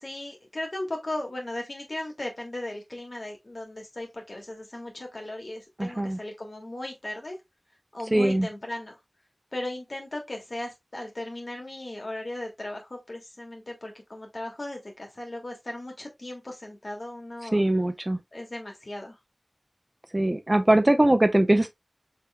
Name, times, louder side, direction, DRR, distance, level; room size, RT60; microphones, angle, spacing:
voice 1, 0.0-7.4 7.9-9.0 9.5-17.6 18.3-19.2, left 1 dB, 65° left, 1.8 m, -37 dB
voice 2, 5.8-6.2 8.1-8.5 17.5-18.2 20.1-21.7, right 1 dB, 35° right, 0.6 m, -21 dB
5.4 x 3.7 x 2.2 m
wide cardioid pair, 45°, 0 cm